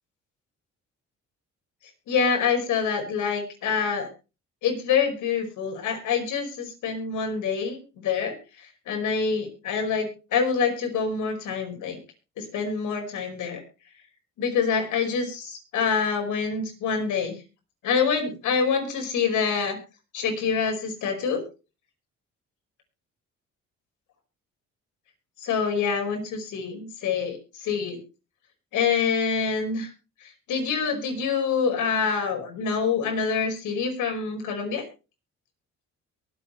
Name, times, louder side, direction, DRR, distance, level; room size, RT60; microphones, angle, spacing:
voice 1, 2.1-4.1 4.6-12.0 12.4-13.6 14.4-17.3 17.8-19.8 20.1-21.4 25.4-28.0 28.7-29.9 30.5-34.8, left 6 dB, 80° left, 4 dB, 5.4 m, -26 dB
23.0 x 8.6 x 3.3 m, 0.31 s
cardioid pair, 90°, 30 cm